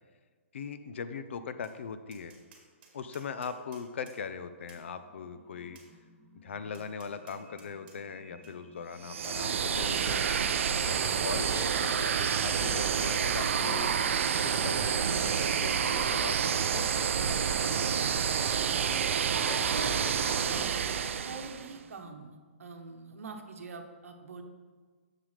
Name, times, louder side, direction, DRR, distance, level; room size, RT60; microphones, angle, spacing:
voice 1, 0.5-2.3 2.9-5.8 6.3-10.4 10.8-14.0 14.4-19.0 19.5-20.7, left 6 dB, 60° left, 10 dB, 0.5 m, -41 dB
Tap, 1.6-1.8 2.1-4.2 4.7-4.8 5.8-5.9 6.7-8.0 8.4-8.5 9.2-9.4, right 5 dB, 40° right, 1.4 m, -57 dB
sound 1, 5.0-22.7, right 1 dB, 5° right, 0.5 m, -54 dB
sound 2, 9.0-21.7, right 7 dB, 65° right, 0.4 m, -29 dB
voice 2, 19.7-20.9 21.2-24.4, right 4 dB, 85° right, 5 dB, 0.9 m, -44 dB
7.2 x 6.7 x 3.2 m, 1.5 s
hypercardioid pair, 170°, 7 cm